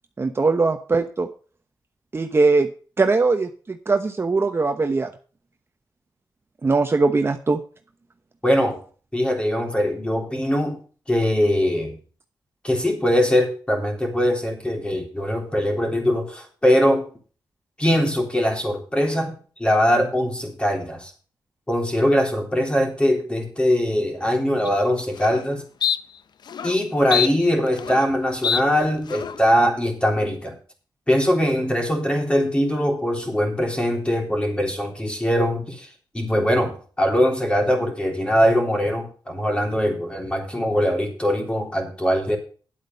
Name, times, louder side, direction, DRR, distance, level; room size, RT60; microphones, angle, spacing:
voice 1, 0.2-1.3 2.1-2.7 3.0-5.1 6.6-7.6, right 3 dB, 30° right, 6 dB, 1.0 m, -20 dB
voice 2, 8.4-8.8 9.1-10.8 11.1-12.0 12.6-17.1 17.8-21.1 21.7-25.6 26.6-30.5 31.1-35.9 36.1-42.4, equal, 15° left, 2 dB, 3.5 m, -21 dB
sound 1, 24.7-24.8 25.2-25.4 25.8-26.0 26.5-26.7 27.1-28.1 28.4-28.6 29.1-29.4, left 8 dB, 70° left, 0.7 m, -25 dB
10.5 x 8.2 x 5.3 m, 0.39 s
cardioid pair, 95°, 8 cm